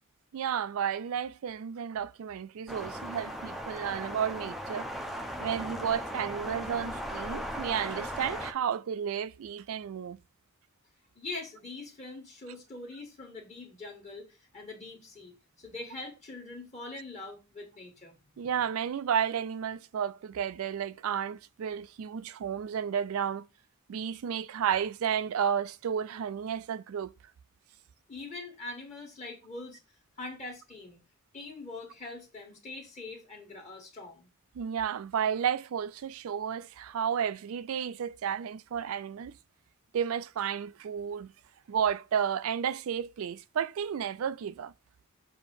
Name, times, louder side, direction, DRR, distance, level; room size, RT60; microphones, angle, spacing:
voice 1, 0.3-4.9 5.4-10.2 18.4-23.5 23.9-27.1 34.6-39.4 39.9-41.3 41.7-44.7, right 8 dB, 75° right, 0.3 m, -32 dB
sound 1, 2.7-8.5, equal, ahead, 0.5 m, -37 dB
voice 2, 11.1-18.5 28.1-29.8 30.2-31.0 31.3-34.3, left 3 dB, 30° left, 1.4 m, -43 dB
7.0 x 2.8 x 5.3 m
head